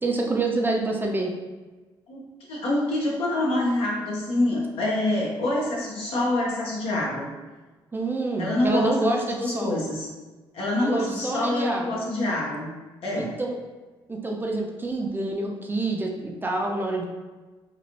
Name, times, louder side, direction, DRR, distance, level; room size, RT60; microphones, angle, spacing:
voice 1, 0.0-1.3 7.9-9.8 10.8-11.9 13.2-13.6 14.1-17.0, right 2 dB, 20° right, 0 dB, 0.5 m, -27 dB
voice 2, 2.5-7.3 8.4-10.1 10.5-12.7 13.0-13.4, left 1 dB, 70° left, -3 dB, 0.9 m, -26 dB
2.9 x 2.6 x 2.8 m, 1.2 s
cardioid pair, 75°, 10 cm